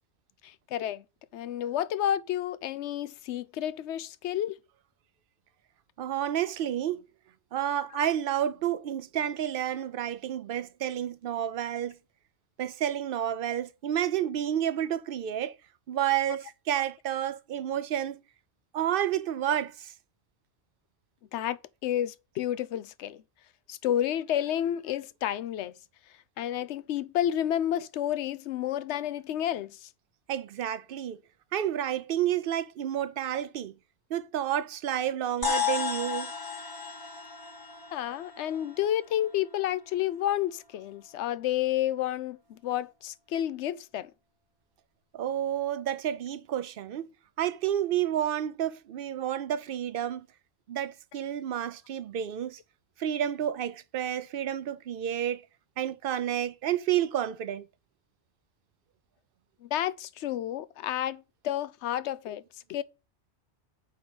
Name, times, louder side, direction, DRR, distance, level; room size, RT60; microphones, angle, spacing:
voice 1, 0.4-1.0 1.3-4.6 21.3-23.2 23.7-25.7 26.4-29.9 37.9-44.1 59.6-62.4 62.7-62.8, left 11 dB, 75° left, 0.9 m, -30 dB
voice 2, 6.0-7.0 7.5-12.0 12.6-15.6 15.9-18.2 18.7-19.9 30.3-31.2 31.5-33.7 34.1-36.3 45.1-47.1 47.4-50.3 50.7-52.6 53.0-55.4 55.8-57.7, right 10 dB, 60° right, 0.7 m, -30 dB
sound 1, 35.4-40.0, left 6 dB, 20° left, 1.2 m, -34 dB
7.0 x 5.3 x 6.1 m
omnidirectional pair, 1.2 m